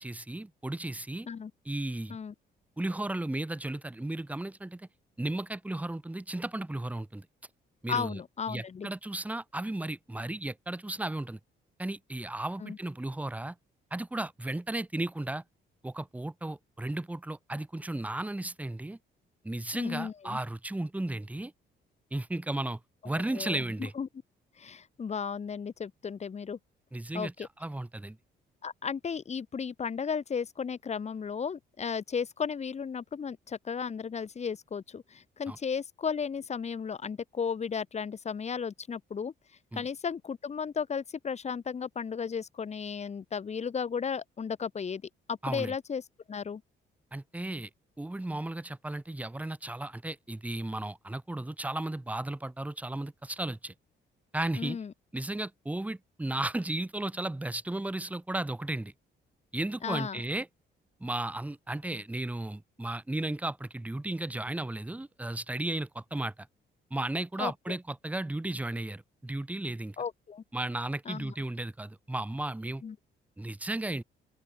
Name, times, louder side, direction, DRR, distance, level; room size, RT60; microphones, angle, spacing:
voice 1, 0.0-1.3 1.7-2.2 2.8-4.9 5.2-7.3 7.8-8.2 8.5-11.4 11.8-13.5 13.9-15.4 15.8-19.0 19.4-21.5 22.1-22.8 23.0-23.9 26.9-28.2 35.5-35.6 39.7-39.9 45.4-45.7 47.1-47.7 48.0-53.7 54.3-54.8 55.1-58.9 59.5-60.5 61.0-66.5 66.9-70.0 70.5-72.8 73.4-74.0, right 1 dB, 5° right, 0.7 m, -34 dB
voice 2, 7.9-8.9 12.6-12.8 19.7-20.4 23.3-24.1 24.6-26.6 27.1-27.3 28.6-39.3 39.7-45.0 45.3-46.0 46.3-46.6 54.6-54.9 59.8-60.2 67.4-67.8 70.0-70.4 71.1-71.3 72.8-73.0, left 6 dB, 35° left, 1.0 m, -34 dB
cardioid pair, 90°, 20 cm